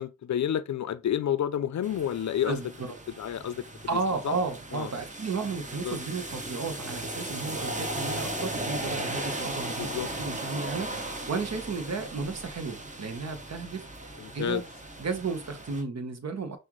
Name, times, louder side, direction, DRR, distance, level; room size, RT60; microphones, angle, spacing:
voice 1, 0.0-2.6 3.2-3.7 4.2-4.4 4.7-4.9 5.8-6.0 9.8-10.1 14.2-14.6, left 10 dB, 70° left, 0.5 m, -29 dB
sound 1, 1.8-15.8, right 1 dB, 25° right, 1.0 m, -37 dB
voice 2, 2.4-3.0 3.9-9.9 10.2-14.6 15.0-16.6, right 4 dB, 60° right, 1.1 m, -33 dB
5.7 x 2.6 x 3.1 m
cardioid pair, 45°, 30 cm